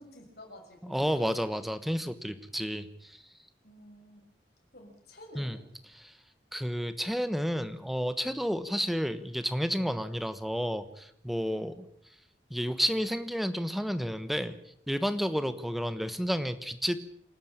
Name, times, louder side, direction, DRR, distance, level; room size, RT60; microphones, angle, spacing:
voice 1, 0.0-1.3 3.6-4.3 4.7-5.6 11.4-11.7 15.4-15.6, left 1 dB, 65° left, 2 dB, 6.9 m, -51 dB
voice 2, 0.8-3.2 5.3-5.6 6.0-6.2 6.5-11.8 12.5-14.5 14.9-17.0, equal, ahead, 11 dB, 1.2 m, -31 dB
28.0 x 12.0 x 8.9 m, 0.72 s
head